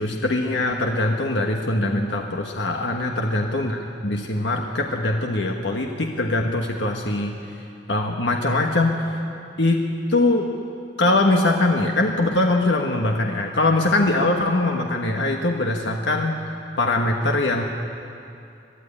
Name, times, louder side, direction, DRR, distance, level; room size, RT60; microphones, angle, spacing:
voice 1, 0.0-3.8 4.0-7.3 7.9-9.1 9.6-10.5 11.0-17.6, left 2 dB, 85° left, 2 dB, 1.4 m, -22 dB
21.5 x 12.5 x 9.9 m, 2.5 s
head